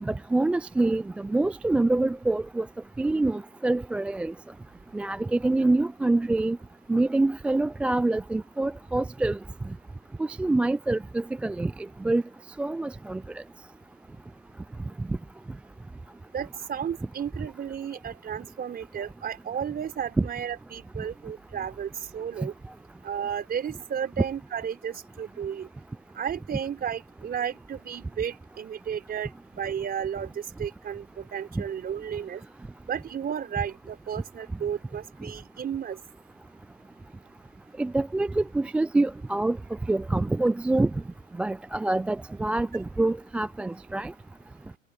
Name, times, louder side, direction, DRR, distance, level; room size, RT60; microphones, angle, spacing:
voice 1, 0.0-2.7 3.0-4.3 4.9-6.6 6.9-9.4 9.7-9.8 10.2-12.2 12.6-13.4 15.0-15.2 20.2-20.3 22.4-22.5 37.8-39.6 39.9-40.9 41.4-44.1, right 2 dB, 5° right, 0.4 m, -26 dB
voice 2, 16.3-22.5 23.0-25.7 26.1-32.4 32.9-36.0, right 8 dB, 20° right, 4.8 m, -33 dB
hypercardioid pair, 105°, 40 cm